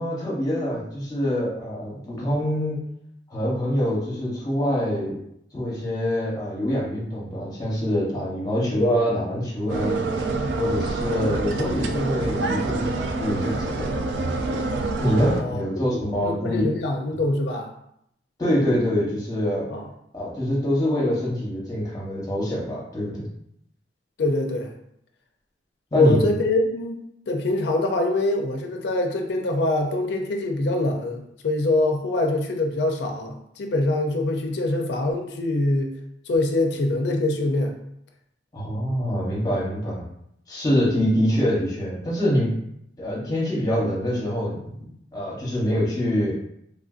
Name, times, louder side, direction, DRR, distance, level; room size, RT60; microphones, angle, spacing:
voice 1, 0.0-2.8 3.3-5.2 5.5-10.0 10.6-13.9 15.0-16.6 18.4-19.7 20.1-23.3 25.9-26.2 38.5-40.0 40.5-42.5 43.0-44.9 45.1-46.4, equal, 20° left, -5 dB, 0.9 m, -25 dB
sound 1, 9.7-15.4, right 3 dB, 75° right, 0.3 m, -26 dB
voice 2, 15.3-16.0 16.2-17.7 19.7-19.8 24.2-24.7 25.9-35.9 36.3-37.7, left 2 dB, 70° left, 3 dB, 0.4 m, -24 dB
3.2 x 2.5 x 2.4 m, 0.75 s
head